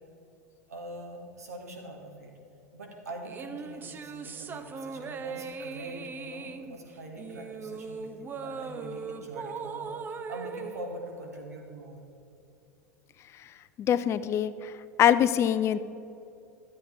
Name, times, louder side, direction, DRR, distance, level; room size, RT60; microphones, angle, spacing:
voice 1, 0.7-2.3 2.7-9.9 10.3-12.0, right 1 dB, 75° right, 1 dB, 2.1 m, -43 dB
sound 1, 3.2-11.8, right 5 dB, 25° right, 0.6 m, -39 dB
voice 2, 13.8-14.5 15.0-15.8, left 10 dB, 30° left, 14 dB, 0.5 m, -23 dB
13.0 x 8.5 x 4.7 m, 2.7 s
figure-of-eight pair, 85°, 9 cm